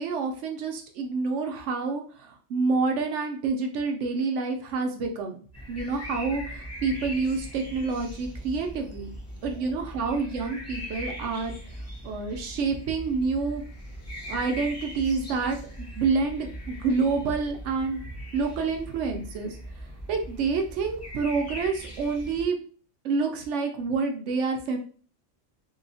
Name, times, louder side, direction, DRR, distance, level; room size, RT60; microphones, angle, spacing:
voice 1, 0.0-5.4 5.7-9.1 9.4-11.6 12.0-13.6 14.3-15.6 16.0-18.1 18.3-19.6 20.1-22.6 23.0-24.8, right 4 dB, 70° right, 4 dB, 0.9 m, -28 dB
sound 1, 5.5-22.4, equal, 20° left, 0.4 m, -40 dB
3.1 x 2.7 x 2.6 m, 0.43 s
omnidirectional pair, 1.3 m